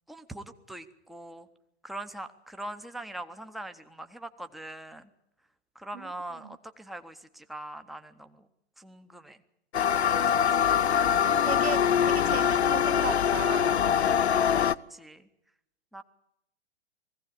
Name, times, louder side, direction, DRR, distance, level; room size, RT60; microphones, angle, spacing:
voice 1, 0.1-1.5 1.8-5.1 5.7-8.5 8.8-9.4 10.0-10.8 14.3-15.3 15.9-16.0, right 1 dB, ahead, 0.8 m, -42 dB
sound 1, 9.7-14.7, left 8 dB, 75° left, 0.7 m, -23 dB
voice 2, 11.5-13.8, right 9 dB, 70° right, 0.7 m, -36 dB
20.0 x 16.0 x 8.6 m
figure-of-eight pair, 110°, 33 cm